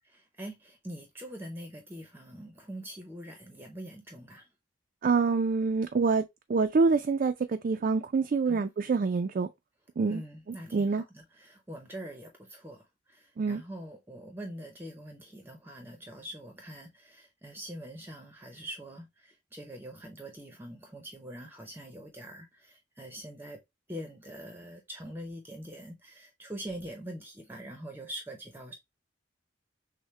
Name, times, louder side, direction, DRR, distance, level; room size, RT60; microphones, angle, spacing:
voice 1, 0.4-4.5 8.5-8.7 10.1-23.6 23.9-28.7, right 1 dB, 10° right, 0.7 m, -44 dB
voice 2, 5.0-6.2 6.5-9.5 10.0-10.2 10.7-11.0 13.4-13.6, right 4 dB, 50° right, 0.3 m, -26 dB
6.3 x 2.1 x 3.2 m
head